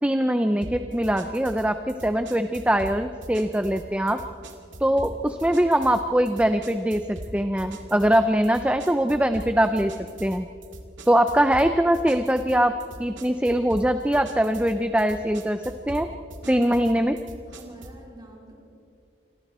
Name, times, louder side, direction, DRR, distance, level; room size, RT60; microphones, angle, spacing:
voice 1, 0.0-4.2 4.8-9.9 10.2-10.5 11.1-16.1 16.5-17.2, right 1 dB, 5° right, 8 dB, 0.6 m, -22 dB
sound 1, 0.6-18.1, right 1 dB, 80° right, 2.3 m, -42 dB
voice 2, 16.4-17.0 17.5-18.6, right 1 dB, 20° right, -1 dB, 4.4 m, -44 dB
28.5 x 24.5 x 4.4 m, 2.6 s
head